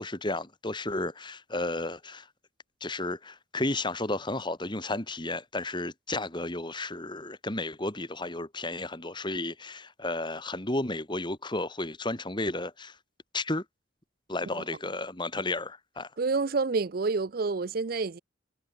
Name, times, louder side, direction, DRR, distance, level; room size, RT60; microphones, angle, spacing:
voice 1, 0.0-2.3 2.8-13.0 13.3-13.6 14.3-16.1, left 2 dB, 25° left, 3.0 m, -33 dB
voice 2, 16.2-18.2, right 4 dB, 50° right, 0.6 m, -28 dB
head